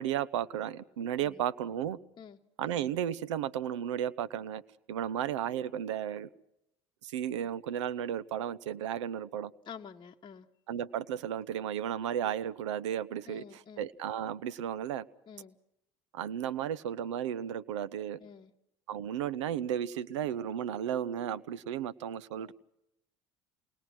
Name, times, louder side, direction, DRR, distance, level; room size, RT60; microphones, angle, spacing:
voice 1, 0.0-2.0 2.6-4.6 4.9-6.3 7.0-9.5 10.7-15.1 16.1-18.2 18.9-22.5, right 10 dB, 85° right, 18 dB, 0.7 m, -34 dB
voice 2, 9.6-10.5 13.3-13.9 15.3-15.6 18.2-18.5 22.4-22.5, left 7 dB, 30° left, 2 dB, 1.1 m, -48 dB
28.0 x 20.0 x 6.1 m, 0.81 s
hypercardioid pair, 75°, 15 cm